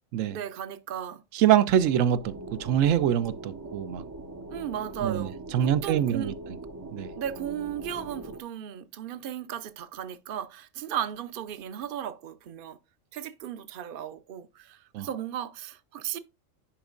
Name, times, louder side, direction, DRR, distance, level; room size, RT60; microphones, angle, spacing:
voice 1, 0.3-1.2 4.5-6.4 7.2-12.8 13.1-16.2, right 9 dB, 55° right, 0.7 m, -36 dB
voice 2, 1.3-4.0 5.0-6.3 6.9-7.1 14.9-15.1, right 10 dB, 80° right, 1.0 m, -24 dB
sound 1, 1.7-8.4, right 2 dB, 25° right, 0.4 m, -41 dB
10.0 x 5.1 x 2.5 m
omnidirectional pair, 1.3 m